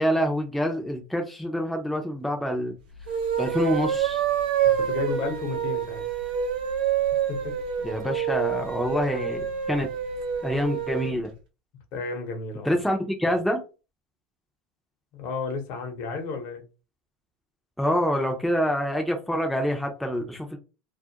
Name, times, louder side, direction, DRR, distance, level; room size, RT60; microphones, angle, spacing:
voice 1, 0.0-2.7 3.4-4.2 7.8-9.9 10.4-11.3 12.6-13.6 17.8-20.6, equal, ahead, 0.5 m, -26 dB
sound 1, 3.0-11.1, right 8 dB, 90° right, 0.6 m, -27 dB
voice 2, 4.6-6.0 7.3-7.6 11.9-12.7 15.1-16.6, left 4 dB, 55° left, 0.8 m, -32 dB
2.3 x 2.1 x 2.8 m
supercardioid pair, 115°, 5 cm